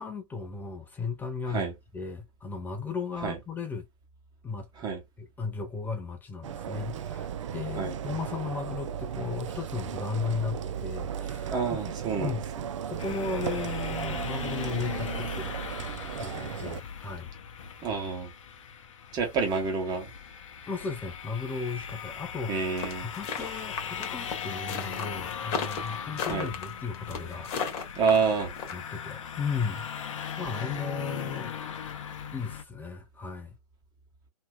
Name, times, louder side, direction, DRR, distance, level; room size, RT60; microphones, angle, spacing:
voice 1, 0.0-3.9 4.4-4.7 5.2-11.8 12.2-12.4 12.9-15.6 16.2-17.3 20.7-22.5 23.0-27.5 28.7-29.9 30.4-31.5 32.3-33.5, left 5 dB, 10° left, 0.5 m, -35 dB
sound 1, 6.4-16.8, right 8 dB, 55° right, 0.5 m, -35 dB
voice 2, 11.4-12.6 17.8-18.3 19.1-20.1 22.5-23.1 26.3-26.5 27.9-28.5, right 5 dB, 20° right, 1.3 m, -28 dB
sound 2, 13.0-32.6, left 8 dB, 55° left, 0.8 m, -39 dB
sound 3, 22.8-28.7, left 6 dB, 30° left, 1.1 m, -34 dB
3.1 x 2.9 x 2.2 m
figure-of-eight pair, 115°, 19 cm